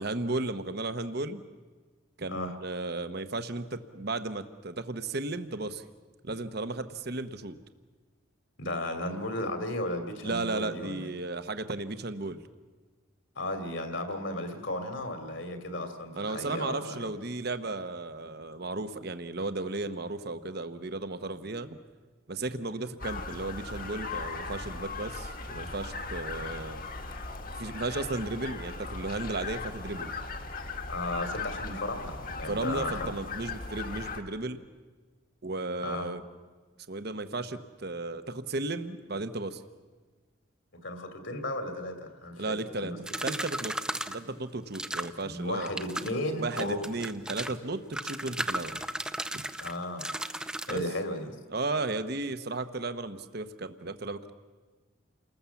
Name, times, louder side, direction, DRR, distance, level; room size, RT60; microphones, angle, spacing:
voice 1, 0.0-1.4 2.2-5.8 6.2-7.6 10.2-12.4 16.2-21.8 22.3-26.8 27.6-30.1 32.5-34.6 35.4-36.2 36.9-39.6 42.4-42.9 43.2-43.7 44.1-45.7 46.4-48.8 49.3-49.4 50.7-50.8 51.5-54.3, right 2 dB, 50° right, 11 dB, 1.0 m, -34 dB
voice 2, 8.6-11.1 13.4-17.1 30.9-33.0 35.8-36.1 40.8-43.0 45.2-46.8 49.6-50.1 50.7-51.4, left 1 dB, 60° left, 7 dB, 2.7 m, -34 dB
sound 1, 23.0-34.2, left 3 dB, 40° left, 1.6 m, -38 dB
sound 2, 43.1-44.2 44.7-45.2 45.6-46.1 46.6-47.6 47.9-50.8, right 1 dB, 5° right, 0.6 m, -35 dB
29.5 x 20.0 x 7.2 m, 1.4 s
head